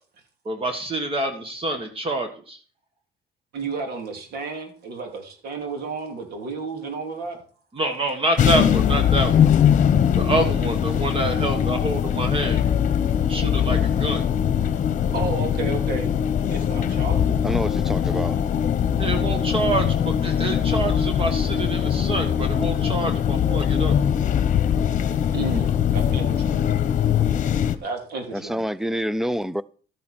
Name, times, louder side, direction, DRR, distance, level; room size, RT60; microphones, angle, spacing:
voice 1, 0.4-2.6 7.7-9.5 10.2-12.6 13.3-14.3 19.0-24.0, right 2 dB, 35° right, 1.6 m, -27 dB
voice 2, 3.5-7.4 15.1-16.1 16.5-17.3 21.8-21.9 25.3-26.7 27.8-28.7, right 4 dB, 70° right, 3.1 m, -32 dB
sound 1, 8.4-27.8, left 9 dB, 50° left, 1.0 m, -21 dB
voice 3, 17.4-18.4 28.3-29.6, equal, ahead, 0.5 m, -27 dB
13.0 x 8.4 x 4.4 m
cardioid pair, 110°, 17 cm